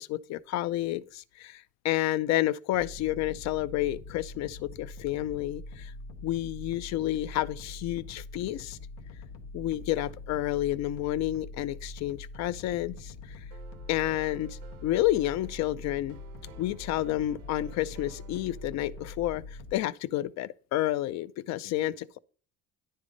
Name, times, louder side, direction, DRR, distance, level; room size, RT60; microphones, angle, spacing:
voice 1, 0.0-5.9 6.2-8.8 9.5-13.4 13.9-16.2 16.6-22.2, left 14 dB, 60° left, 0.4 m, -30 dB
sound 1, 2.7-19.7, left 2 dB, 90° left, 0.9 m, -44 dB
sound 2, 13.5-19.4, right 9 dB, 90° right, 0.8 m, -55 dB
9.9 x 3.4 x 5.1 m
cardioid pair, 95°, 31 cm